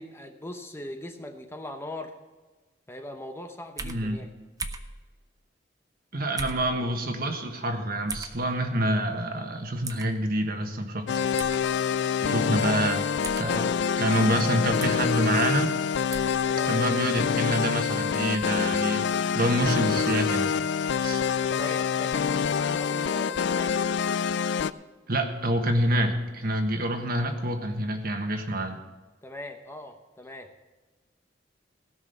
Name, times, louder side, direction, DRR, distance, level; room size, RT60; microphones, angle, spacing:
voice 1, 0.0-2.1 2.9-4.3 13.4-13.7 16.4-16.8 21.5-23.7 29.2-30.5, left 1 dB, 15° left, 5 dB, 0.8 m, -40 dB
sound 1, 3.8-4.0 4.6-4.9 6.4-6.7 8.1-8.3 9.8-10.1 11.4-11.6 13.2-13.5 14.8-15.0 16.1-16.4, right 4 dB, 20° right, 0.7 m, -36 dB
voice 2, 3.8-4.3 6.1-11.0 12.2-13.0 13.4-13.6 14.0-15.8 16.7-19.0 19.3-20.5 21.0-21.3 25.1-28.8, right 1 dB, 55° right, 5 dB, 1.4 m, -27 dB
sound 2, 11.1-24.7, left 7 dB, 65° left, 0.4 m, -26 dB
16.5 x 6.2 x 6.7 m, 1.2 s
head